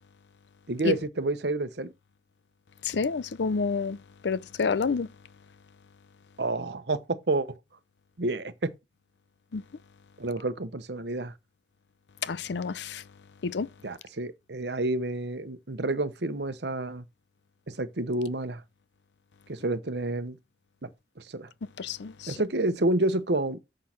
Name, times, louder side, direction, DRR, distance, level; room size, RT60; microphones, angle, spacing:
voice 1, 0.7-1.9 6.4-7.6 8.2-8.7 10.2-11.3 13.8-17.0 17.7-18.6 19.5-20.4 20.8-20.9 21.3-21.5 22.3-23.6, right 2 dB, 70° right, 1.0 m, -29 dB
voice 2, 2.8-4.0 4.2-5.1 9.5-9.6 12.2-13.0 13.4-13.7 21.8-22.4, left 5 dB, 75° left, 0.5 m, -28 dB
6.4 x 6.4 x 5.9 m
head